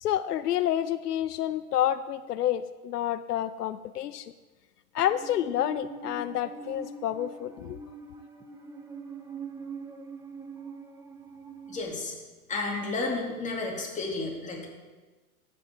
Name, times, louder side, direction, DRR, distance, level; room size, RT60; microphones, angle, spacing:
voice 1, 0.0-4.3 4.9-7.8, left 11 dB, 85° left, 13 dB, 0.6 m, -29 dB
Musical instrument, 5.0-11.8, right 4 dB, 5° right, 0.6 m, -43 dB
voice 2, 11.7-12.1 12.5-14.7, left 3 dB, 15° left, -1 dB, 2.5 m, -32 dB
15.5 x 5.4 x 5.7 m, 1.3 s
hypercardioid pair, 120°, 46 cm